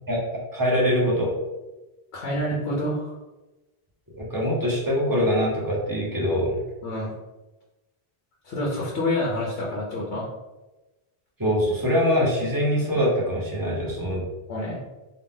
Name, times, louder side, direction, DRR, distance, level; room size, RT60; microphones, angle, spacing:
voice 1, 0.5-1.3 4.1-6.6 11.4-14.2, equal, 20° right, -4 dB, 1.0 m, -23 dB
voice 2, 2.1-3.2 6.8-7.1 8.4-10.3 14.5-14.8, left 1 dB, 90° left, -4 dB, 1.0 m, -27 dB
3.9 x 2.3 x 3.7 m, 1.1 s
omnidirectional pair, 1.0 m